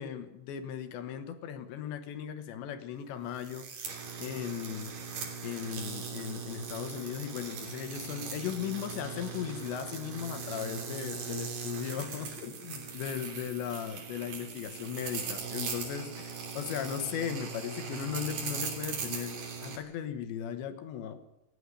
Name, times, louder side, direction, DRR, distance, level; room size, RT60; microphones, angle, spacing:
voice 1, 0.0-5.0 5.4-21.2, left 9 dB, 75° left, 9 dB, 3.5 m, -37 dB
sound 1, 3.4-19.8, right 5 dB, 50° right, 4.5 m, -39 dB
28.5 x 10.0 x 9.9 m, 0.94 s
omnidirectional pair, 5.3 m